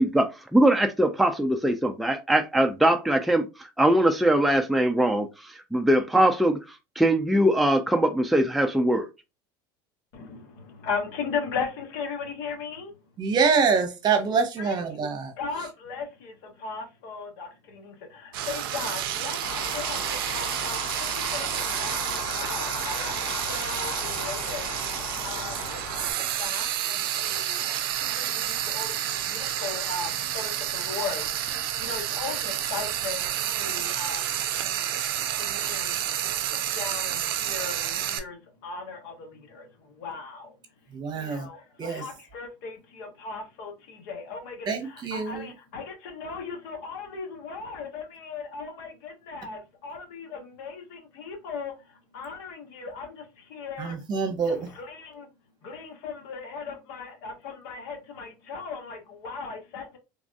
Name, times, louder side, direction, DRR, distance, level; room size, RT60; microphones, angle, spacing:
voice 1, 0.0-3.5 3.8-5.3 5.7-6.6 7.0-9.1, right 1 dB, ahead, 0.4 m, -21 dB
voice 2, 10.1-12.9 14.6-14.8 15.4-34.4 35.4-40.5 41.1-54.0 54.5-55.3 55.6-60.0, left 5 dB, 75° left, 1.1 m, -38 dB
voice 3, 13.2-15.3 40.9-41.5 41.8-42.0 44.7-45.5 53.8-54.7, right 5 dB, 40° right, 0.9 m, -25 dB
Frying (food), 18.3-38.2, right 11 dB, 85° right, 0.4 m, -30 dB
sound 1, 19.4-26.1, left 3 dB, 50° left, 1.1 m, -36 dB
3.4 x 2.4 x 2.3 m
supercardioid pair, 95°, 12 cm